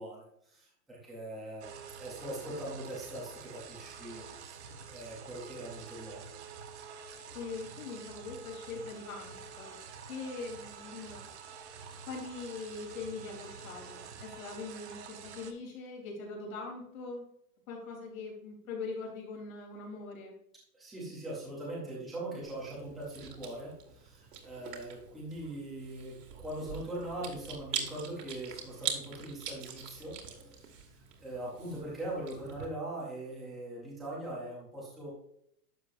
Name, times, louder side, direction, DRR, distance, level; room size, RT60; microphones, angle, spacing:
voice 1, 0.0-6.2 20.7-35.1, right 1 dB, ahead, -8 dB, 0.6 m, -41 dB
sound 1, 1.6-15.5, right 6 dB, 45° right, 1.0 m, -48 dB
voice 2, 7.3-9.8 10.1-11.3 12.1-17.3 17.7-20.3, left 4 dB, 60° left, -2 dB, 3.6 m, -42 dB
Chewing mastication, 22.4-32.7, right 7 dB, 70° right, 2.1 m, -43 dB
11.5 x 7.1 x 2.5 m, 0.72 s
hypercardioid pair, 175°, 48 cm